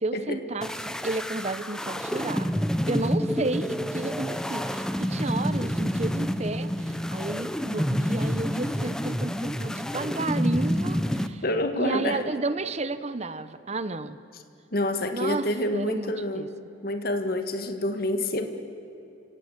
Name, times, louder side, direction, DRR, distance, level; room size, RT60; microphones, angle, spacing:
voice 1, 0.0-2.5 2.9-11.4 11.8-14.2 15.1-16.5, right 2 dB, 35° right, 13 dB, 0.8 m, -32 dB
sound 1, 0.6-11.3, equal, 5° left, 0.7 m, -28 dB
voice 2, 11.4-12.2 14.7-16.5 16.8-18.5, left 1 dB, 50° left, 7 dB, 1.7 m, -27 dB
29.0 x 17.0 x 8.2 m, 2.9 s
head